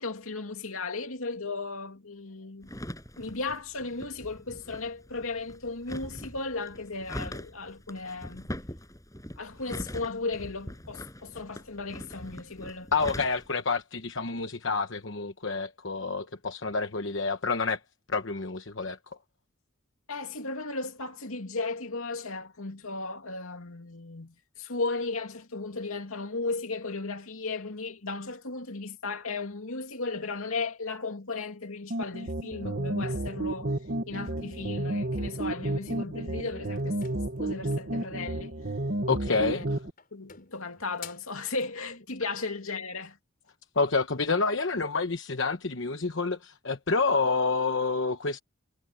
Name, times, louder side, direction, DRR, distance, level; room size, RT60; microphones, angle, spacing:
voice 1, 0.0-2.7 3.2-8.5 9.4-12.9 20.1-33.7 34.1-38.6 39.3-39.7 40.1-43.2, left 3 dB, 80° left, 2.7 m, -35 dB
sound 1, 2.6-13.5, equal, 15° left, 7.8 m, -42 dB
voice 2, 12.9-17.8 18.1-19.0 39.1-39.6 43.7-48.4, left 4 dB, 60° left, 1.1 m, -28 dB
sound 2, 31.9-39.9, right 1 dB, 50° right, 1.4 m, -32 dB
sound 3, 36.7-38.0 39.2-39.6 40.0-41.4, left 9 dB, 40° left, 5.9 m, -49 dB
head